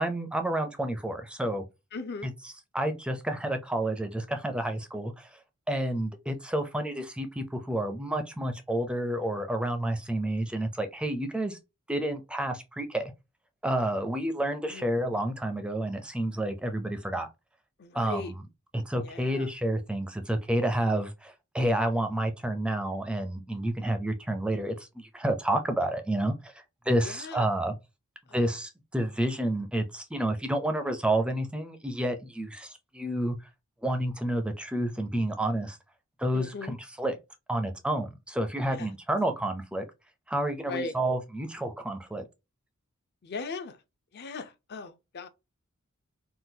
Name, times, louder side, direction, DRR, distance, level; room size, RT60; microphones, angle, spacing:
voice 1, 0.0-1.7 2.2-2.3 2.7-5.3 5.7-11.6 11.9-13.1 13.6-17.3 17.9-18.4 18.7-26.5 26.9-27.7 28.3-33.4 33.8-35.8 36.2-37.2 37.5-39.8 40.3-42.2, right 1 dB, 5° right, 0.4 m, -30 dB
voice 2, 1.9-2.3 14.7-14.9 17.8-18.3 19.0-19.5 27.0-27.5 28.3-28.4 36.3-36.7 38.6-38.9 40.6-40.9 43.2-43.8 44.1-45.3, left 3 dB, 50° left, 0.5 m, -38 dB
3.8 x 2.3 x 2.6 m
head